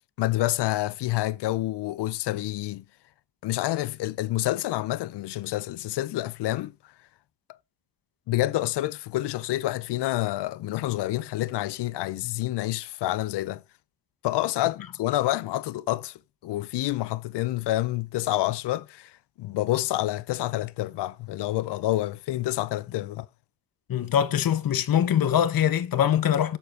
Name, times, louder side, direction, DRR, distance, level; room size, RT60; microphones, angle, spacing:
voice 1, 0.2-2.8 3.4-6.9 8.3-13.6 14.2-23.3, left 16 dB, 80° left, 0.6 m, -28 dB
voice 2, 23.9-26.6, left 9 dB, 60° left, 1.0 m, -23 dB
6.8 x 6.7 x 4.8 m
cardioid pair, 120°, 40 cm